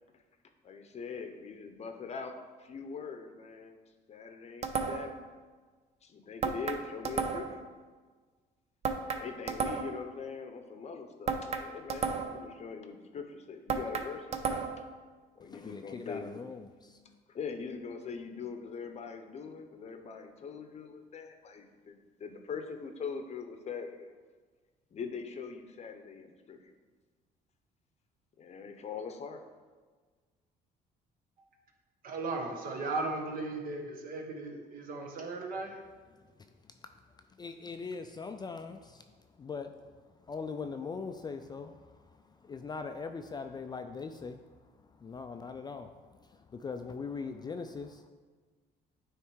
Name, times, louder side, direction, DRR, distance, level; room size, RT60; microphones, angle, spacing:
voice 1, 0.6-3.8 4.1-5.2 6.0-7.7 9.1-14.6 15.4-16.3 17.3-24.1 24.9-26.7 28.4-29.4, left 5 dB, 40° left, 6 dB, 0.7 m, -42 dB
sound 1, 4.6-5.2 6.4-7.6 8.8-10.1 11.3-12.5 13.7-14.9, right 5 dB, 40° right, 0.6 m, -33 dB
voice 2, 15.4-17.0 36.4-36.5 37.4-39.0 39.4-39.8 40.3-41.9 42.4-44.4 45.0-45.9 46.2-48.1, left 5 dB, 25° left, 7 dB, 0.4 m, -41 dB
voice 3, 32.0-35.8, right 3 dB, 55° right, 2 dB, 1.2 m, -36 dB
9.3 x 3.2 x 4.7 m, 1.4 s
cardioid pair, 110°, 17 cm